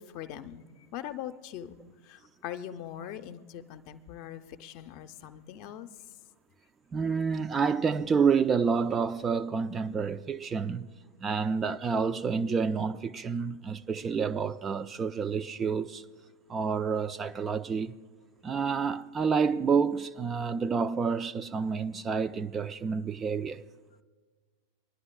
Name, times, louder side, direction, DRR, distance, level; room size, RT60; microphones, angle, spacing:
voice 1, 0.1-1.7 2.0-5.9, left 10 dB, 45° left, 0.6 m, -41 dB
voice 2, 6.9-10.9 11.2-16.0 16.5-18.0 18.4-23.6, right 5 dB, 20° right, 0.3 m, -29 dB
24.5 x 11.0 x 2.2 m
figure-of-eight pair, 90°, 0 cm